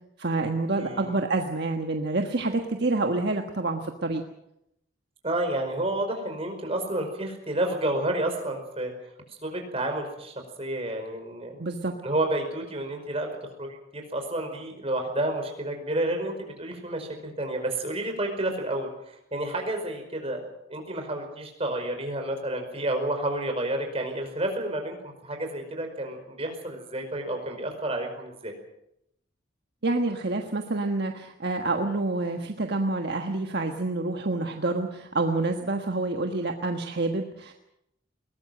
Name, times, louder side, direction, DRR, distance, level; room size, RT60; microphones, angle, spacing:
voice 1, 0.2-4.2 11.6-11.9 29.8-37.5, right 2 dB, 55° right, 4 dB, 1.5 m, -28 dB
voice 2, 0.7-1.2 5.2-8.9 9.3-11.6 12.0-20.4 20.7-28.5, right 1 dB, 30° right, 4 dB, 5.1 m, -30 dB
21.5 x 19.5 x 7.7 m, 0.81 s
head